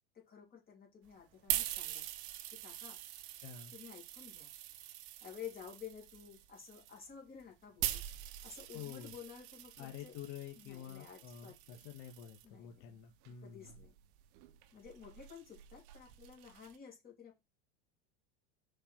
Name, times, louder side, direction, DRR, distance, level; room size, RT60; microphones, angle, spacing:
voice 1, 0.1-2.0 2.5-3.0 3.7-4.5 5.2-8.0 8.4-10.1 10.6-11.8 12.4-13.0 13.4-13.9 14.7-17.4, left 7 dB, 25° left, -1 dB, 2.9 m, -52 dB
sound 1, 1.1-12.5 13.2-16.8, right 13 dB, 55° right, 1.0 m, -44 dB
voice 2, 3.4-3.7 8.7-9.1 9.8-13.8, left 9 dB, 55° left, 2 dB, 1.5 m, -49 dB
5.4 x 4.6 x 4.5 m, 0.23 s
supercardioid pair, 140°, 35 cm